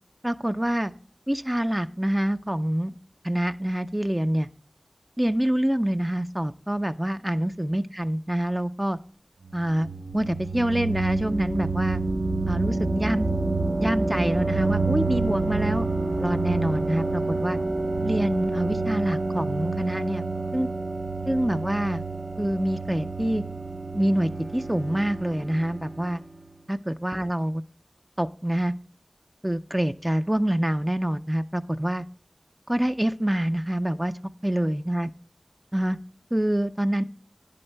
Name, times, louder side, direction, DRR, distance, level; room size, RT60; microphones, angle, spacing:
voice 1, 0.2-0.9 1.3-2.9 3.2-4.5 5.2-9.0 9.5-12.0 12.5-13.3 13.8-15.9 16.2-17.6 18.0-20.7 21.3-22.0 22.4-23.4 23.9-26.2 26.7-27.6 28.2-28.7 29.4-32.0 32.7-34.1 34.4-35.1 35.7-36.0 36.3-37.0, right 1 dB, 15° right, 9 dB, 0.3 m, -26 dB
sound 1, 9.5-26.2, right 3 dB, 70° right, 0.8 m, -28 dB
9.9 x 8.5 x 3.3 m, 0.44 s
wide cardioid pair, 45°, 0 cm